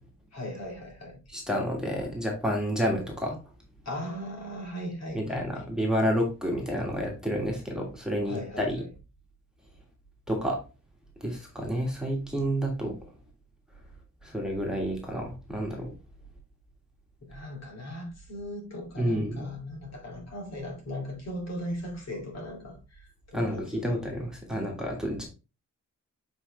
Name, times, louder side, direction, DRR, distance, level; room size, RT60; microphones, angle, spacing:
voice 1, 0.3-1.2 3.8-5.7 8.3-8.9 17.2-23.9 24.5-24.6, left 1 dB, 60° left, 2.6 m, -38 dB
voice 2, 1.3-3.4 5.1-8.8 10.3-10.6 11.2-12.9 14.2-15.9 19.0-19.4 23.3-25.2, equal, ahead, 1.7 m, -29 dB
7.5 x 4.9 x 3.2 m
wide cardioid pair, 155°, 30 cm